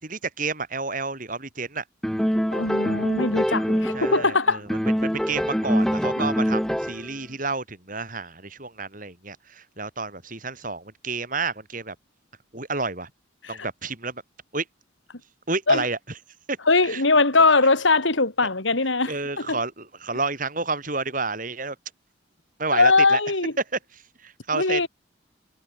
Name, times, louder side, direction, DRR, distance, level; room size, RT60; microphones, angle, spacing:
voice 1, 0.0-1.8 3.9-4.7 5.0-12.0 12.5-13.1 13.5-14.2 14.5-14.6 15.5-16.0 16.5-16.6 16.8-17.0 19.1-21.8 22.6-23.2 24.2-24.9, right 3 dB, 45° right, 7.3 m, -30 dB
sound 1, 2.0-4.4 4.7-7.1, equal, ahead, 2.5 m, -24 dB
voice 2, 2.5-4.6 13.4-13.6 15.7-15.8 16.7-19.6 22.7-23.5 24.5-24.9, left 3 dB, 75° left, 3.1 m, -21 dB
head